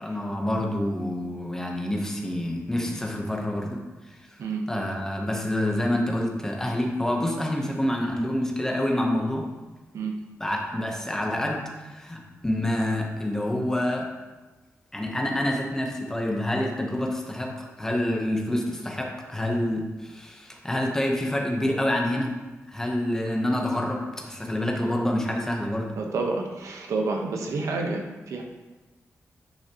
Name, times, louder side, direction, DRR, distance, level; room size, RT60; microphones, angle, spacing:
voice 1, 0.0-4.4 4.7-9.5 10.4-14.1 14.9-22.4 22.7-25.9, left 1 dB, 10° left, 0 dB, 1.0 m, -27 dB
voice 2, 25.9-28.4, right 3 dB, 80° right, 2 dB, 1.1 m, -29 dB
10.0 x 6.4 x 3.0 m, 1.2 s
wide cardioid pair, 180°, 5 cm